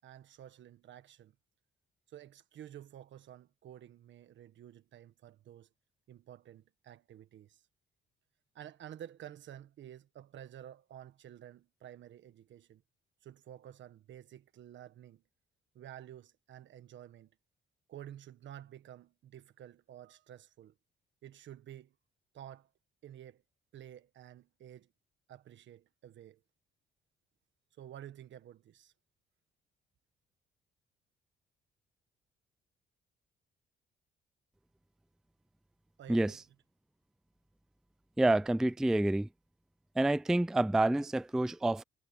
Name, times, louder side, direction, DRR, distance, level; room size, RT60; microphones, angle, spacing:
voice 1, 0.0-1.3 2.1-5.7 6.1-7.6 8.5-12.8 13.2-15.2 15.7-17.3 17.9-20.7 21.2-21.9 22.3-22.7 23.0-23.4 23.7-24.9 25.3-26.4 27.8-28.9 36.0-36.4, right 11 dB, 70° right, 1.5 m, -51 dB
voice 2, 36.1-36.4 38.2-39.3 40.0-41.8, right 2 dB, 5° right, 0.3 m, -28 dB
cardioid pair, 90°, 20 cm